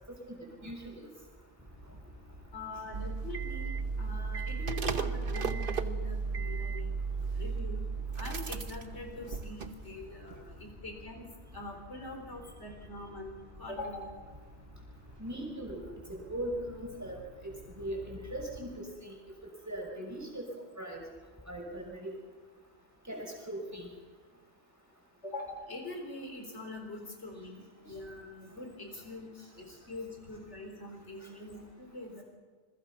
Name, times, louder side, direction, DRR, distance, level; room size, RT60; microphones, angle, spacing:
voice 1, 0.6-1.1 15.2-15.8 16.1-17.5 17.8-19.2 19.7-20.4 20.8-21.0 21.5-22.1 23.1-23.9, right 1 dB, 15° right, 0 dB, 5.9 m, -39 dB
sound 1, 1.6-18.8, equal, 35° right, 4.6 m, -52 dB
voice 2, 2.5-3.7 4.0-6.9 7.3-7.8 8.2-11.2 11.5-14.2 25.2-32.2, left 2 dB, 85° left, 3 dB, 4.5 m, -43 dB
sound 2, 2.9-10.0 10.3-10.4, right 5 dB, 55° right, 1.2 m, -35 dB
28.0 x 21.5 x 5.9 m, 1.5 s
omnidirectional pair, 1.1 m